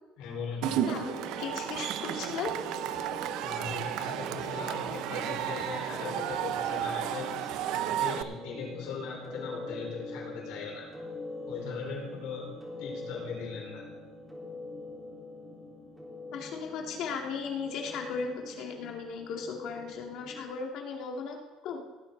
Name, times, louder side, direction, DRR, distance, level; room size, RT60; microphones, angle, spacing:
voice 1, 0.2-0.9 3.4-10.9 11.5-12.5 12.8-13.9, left 5 dB, 80° left, -2 dB, 5.0 m, -39 dB
Cheering / Crowd, 0.6-8.2, right 11 dB, 70° right, 0.6 m, -33 dB
voice 2, 0.8-2.5 16.3-21.4 21.6-21.8, left 5 dB, 60° left, 1 dB, 2.4 m, -36 dB
sound 1, 0.8-20.4, left 1 dB, 10° right, 3.5 m, -43 dB
17.5 x 9.3 x 4.1 m, 1.1 s
cardioid pair, 125°, 0 cm